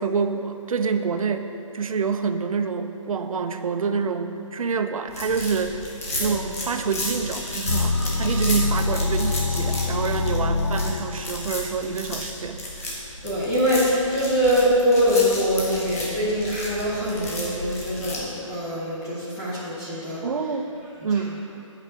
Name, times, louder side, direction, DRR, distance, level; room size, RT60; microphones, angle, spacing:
voice 1, 0.0-12.6 20.2-20.7 21.0-21.4, right 5 dB, 85° right, 8 dB, 0.6 m, -27 dB
sound 1, 5.1-18.2, left 1 dB, 25° left, 1.0 m, -33 dB
sound 2, 7.7-11.5, left 3 dB, 60° left, 0.7 m, -25 dB
voice 2, 13.2-20.2, equal, 5° left, -9 dB, 0.4 m, -23 dB
6.6 x 4.8 x 6.7 m, 2.9 s
hypercardioid pair, 175°, 17 cm